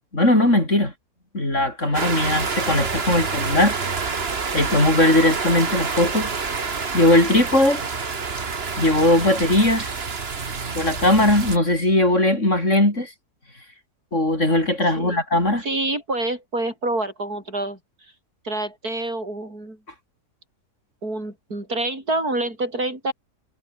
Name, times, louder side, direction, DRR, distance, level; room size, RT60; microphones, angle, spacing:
voice 1, 0.1-0.9 1.3-3.7 4.5-6.3 6.9-7.8 8.8-9.9 10.7-13.1 14.1-15.6, left 1 dB, 45° left, 7.5 m, -19 dB
sound 1, 1.9-11.6, right 5 dB, 40° right, 1.8 m, -27 dB
voice 2, 15.6-17.8 18.4-19.8 21.0-23.1, right 2 dB, 65° right, 7.5 m, -27 dB
omnidirectional pair, 1.7 m